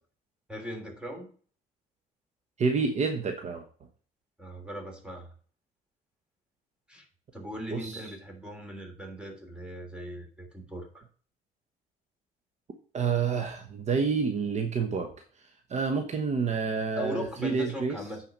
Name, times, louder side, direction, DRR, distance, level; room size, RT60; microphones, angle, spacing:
voice 1, 0.5-1.3 4.4-5.3 6.9-7.1 7.3-11.0 16.9-18.2, equal, 5° right, 3 dB, 3.1 m, -39 dB
voice 2, 2.6-3.6 7.7-8.0 12.9-18.0, right 5 dB, 45° right, 5 dB, 1.2 m, -29 dB
9.0 x 5.0 x 5.3 m, 0.43 s
cardioid pair, 110°, 17 cm